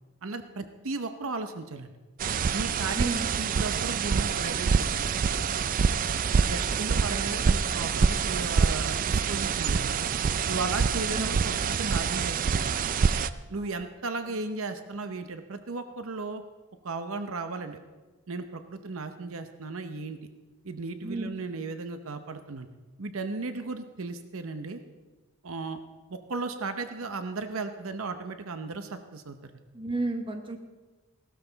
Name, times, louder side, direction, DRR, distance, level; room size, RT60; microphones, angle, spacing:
voice 1, 0.2-1.9 2.5-5.1 6.4-10.0 10.5-12.9 13.5-16.4 16.8-17.8 18.3-20.2 20.6-22.7 23.0-24.8 25.4-25.8 26.1-29.5, right 3 dB, 65° right, 8 dB, 0.8 m, -35 dB
sound 1, 2.2-13.3, right 6 dB, 40° right, 0.3 m, -26 dB
voice 2, 2.9-3.3 7.0-7.5 11.1-11.3 13.5-13.8 21.0-21.3 29.7-30.6, right 2 dB, 25° right, 5 dB, 1.0 m, -33 dB
16.0 x 12.5 x 4.0 m, 1.2 s
head